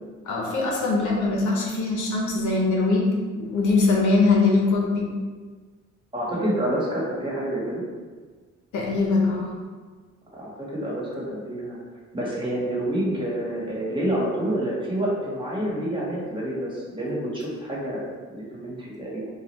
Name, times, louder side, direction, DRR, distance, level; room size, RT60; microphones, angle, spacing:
voice 1, 0.2-3.1 3.3-5.1 8.7-9.5, left 3 dB, 75° left, -1 dB, 0.9 m, -22 dB
voice 2, 6.1-7.8 10.3-11.8 12.1-19.2, right 1 dB, 15° right, -6 dB, 1.4 m, -28 dB
4.8 x 2.4 x 3.1 m, 1.4 s
cardioid pair, 90°, 30 cm